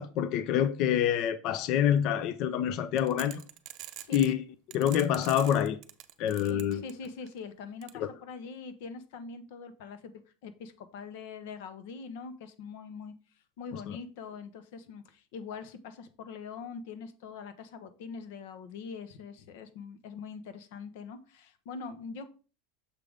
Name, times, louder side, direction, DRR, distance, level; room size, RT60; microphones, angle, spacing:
voice 1, 0.0-3.4 4.1-4.4 4.7-5.8 6.2-6.8 7.9-8.1, left 10 dB, 45° left, 0.5 m, -27 dB
sound 1, 3.0-4.3 4.7-7.3 7.8-7.9, right 14 dB, 45° right, 0.6 m, -44 dB
voice 2, 6.5-10.1 10.4-13.1 13.6-22.3, left 5 dB, 65° left, 0.9 m, -43 dB
6.6 x 3.5 x 5.0 m
supercardioid pair, 155°, 0 cm